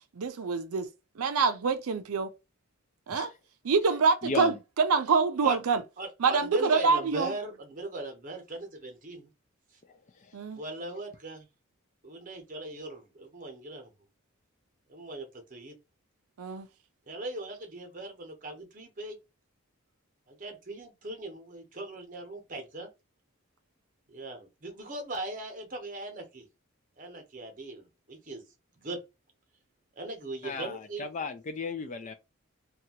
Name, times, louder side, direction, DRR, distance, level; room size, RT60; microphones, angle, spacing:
voice 1, 0.2-0.9 1.2-2.3 3.1-3.3 3.6-5.8 6.2-7.3 10.3-10.6 16.4-16.7, right 5 dB, 80° right, 0.5 m, -26 dB
voice 2, 4.2-4.6 30.4-32.1, left 4 dB, 35° left, 0.3 m, -35 dB
voice 3, 6.0-9.3 10.6-11.4 12.0-13.9 14.9-15.7 17.1-19.2 20.3-22.9 24.1-26.4 27.0-28.4 28.8-29.0 30.0-31.1, right 2 dB, 35° right, 0.8 m, -39 dB
2.8 x 2.3 x 2.8 m
head